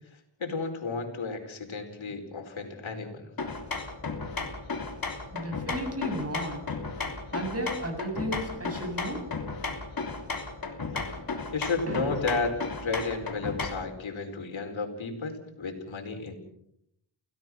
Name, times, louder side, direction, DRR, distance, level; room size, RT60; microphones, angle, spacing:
voice 1, 0.4-3.3 11.1-11.2 11.5-16.3, left 4 dB, 80° left, 4 dB, 4.7 m, -33 dB
sound 1, 3.4-13.9, left 3 dB, 45° left, 3.5 m, -34 dB
voice 2, 5.3-6.6 7.3-9.3 11.9-12.3, equal, 30° right, 5 dB, 7.6 m, -33 dB
29.0 x 17.5 x 6.2 m, 0.73 s
wide cardioid pair, 80°, 46 cm